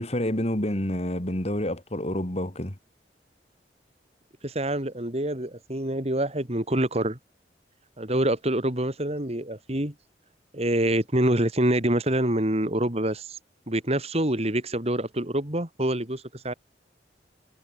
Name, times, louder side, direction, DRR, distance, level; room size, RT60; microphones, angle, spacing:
voice 1, 0.0-2.8, left 1 dB, 35° left, 3.3 m, -28 dB
voice 2, 4.4-7.2 8.0-9.9 10.5-13.4 13.7-16.5, right 1 dB, 35° right, 3.3 m, -26 dB
head